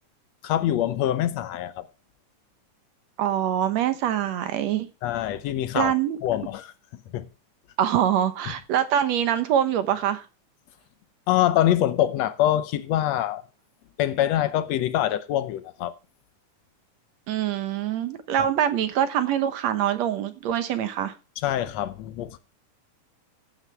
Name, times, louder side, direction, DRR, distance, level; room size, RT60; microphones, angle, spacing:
voice 1, 0.4-1.9 5.0-5.9 6.2-6.7 7.1-7.3 11.3-13.4 14.0-15.9 21.4-22.4, left 12 dB, 70° left, 1.7 m, -24 dB
voice 2, 3.2-4.9 5.8-6.2 7.8-10.3 17.3-21.1, right 10 dB, 65° right, 2.0 m, -24 dB
15.5 x 9.0 x 3.4 m
omnidirectional pair, 3.6 m